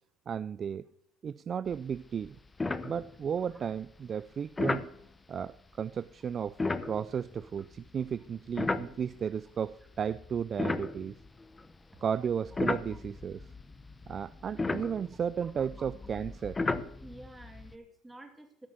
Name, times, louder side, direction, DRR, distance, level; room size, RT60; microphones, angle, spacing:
voice 1, 0.3-0.9 1.2-2.4 2.8-4.9 5.3-6.6 6.9-11.2 12.0-13.4 14.1-16.6, right 7 dB, 35° right, 0.3 m, -34 dB
sound 1, 1.7-2.0 2.2-2.3 2.6-3.4 4.6-4.9 6.5-9.4 10.0-11.8 12.3-17.7, left 3 dB, 15° left, 0.7 m, -35 dB
voice 2, 17.0-18.7, right 1 dB, 10° right, 2.4 m, -51 dB
13.5 x 6.1 x 6.7 m
supercardioid pair, 100°, 0 cm